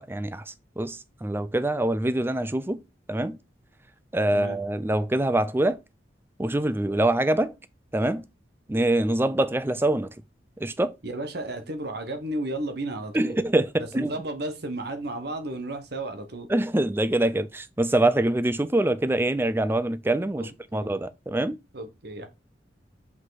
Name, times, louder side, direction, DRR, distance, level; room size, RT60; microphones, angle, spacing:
voice 1, 0.0-2.8 3.1-3.4 4.1-5.8 6.4-7.5 7.9-8.3 8.7-10.1 10.6-11.0 13.1-14.1 16.5-21.6, right 1 dB, 15° right, 0.4 m, -25 dB
voice 2, 11.0-13.4 13.9-16.5 20.4-20.9 21.7-22.3, right 1 dB, 60° right, 1.3 m, -33 dB
5.7 x 5.2 x 4.0 m
head